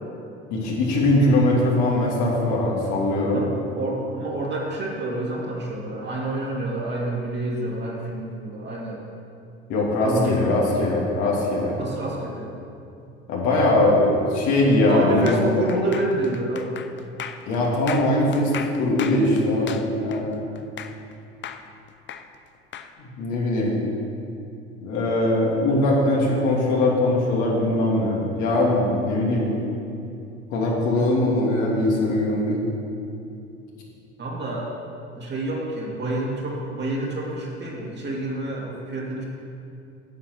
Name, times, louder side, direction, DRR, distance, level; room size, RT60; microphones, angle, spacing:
voice 1, 0.5-3.4 9.7-11.8 13.3-15.6 17.5-20.4 23.0-23.7 24.8-29.5 30.5-32.6, left 1 dB, 60° left, -3 dB, 2.8 m, -21 dB
voice 2, 3.8-9.0 10.0-11.0 11.8-12.5 14.9-16.7 34.2-34.7 35.2-39.3, right 2 dB, 35° right, -3 dB, 2.6 m, -28 dB
sound 1, 15.3-21.1 21.4-22.9, left 8 dB, 35° left, 0.7 m, -37 dB
8.7 x 7.6 x 6.1 m, 2.6 s
hypercardioid pair, 70°, 32 cm